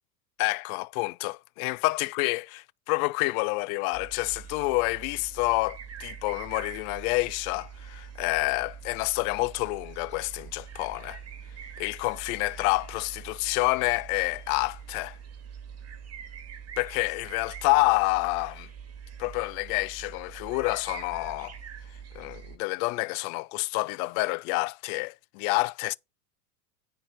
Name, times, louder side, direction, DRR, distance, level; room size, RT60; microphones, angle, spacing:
voice 1, 0.4-11.2 11.8-15.2 16.8-18.7 19.2-21.5 22.1-26.0, left 23 dB, 60° left, 0.6 m, -28 dB
sound 1, 3.9-22.6, right 7 dB, 30° right, 2.2 m, -44 dB
9.6 x 4.6 x 5.9 m
supercardioid pair, 105°, 49 cm